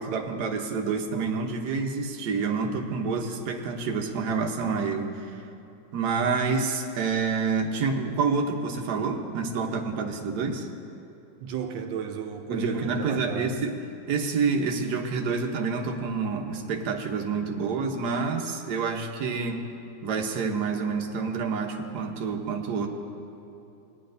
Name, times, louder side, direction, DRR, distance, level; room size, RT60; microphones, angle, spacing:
voice 1, 0.0-5.4 5.9-10.7 12.5-13.7 14.1-19.7 20.0-22.9, right 4 dB, 65° right, 2 dB, 1.4 m, -28 dB
voice 2, 11.4-13.6, right 7 dB, 85° right, 5 dB, 1.4 m, -34 dB
19.0 x 10.0 x 2.6 m, 2.9 s
omnidirectional pair, 2.0 m